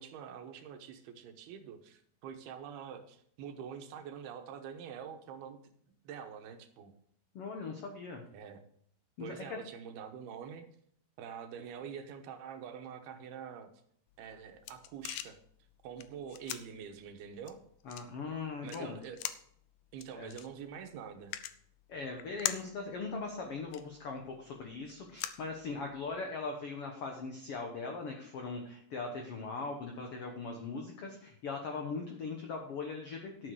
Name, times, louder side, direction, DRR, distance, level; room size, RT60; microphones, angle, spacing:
voice 1, 0.0-5.6 6.0-6.9 8.3-8.6 9.2-10.7 11.2-13.7 14.2-15.4 15.8-17.6 18.6-19.3 19.9-21.4, right 7 dB, 90° right, 6 dB, 3.0 m, -46 dB
voice 2, 7.3-8.2 9.2-9.6 17.8-19.0 20.1-20.3 21.9-33.5, left 4 dB, 65° left, 3 dB, 1.5 m, -40 dB
sound 1, 14.1-26.2, left 13 dB, 80° left, 1.8 m, -45 dB
11.5 x 8.4 x 4.8 m, 0.66 s
omnidirectional pair, 4.4 m